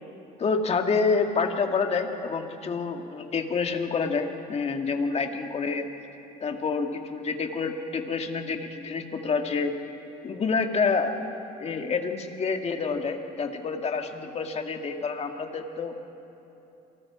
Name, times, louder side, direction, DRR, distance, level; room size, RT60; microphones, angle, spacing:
voice 1, 0.4-5.9 6.4-9.8 10.2-11.3 11.6-15.9, left 4 dB, 40° left, 4 dB, 1.9 m, -28 dB
28.0 x 20.0 x 4.9 m, 3.0 s
cardioid pair, 110°, 17 cm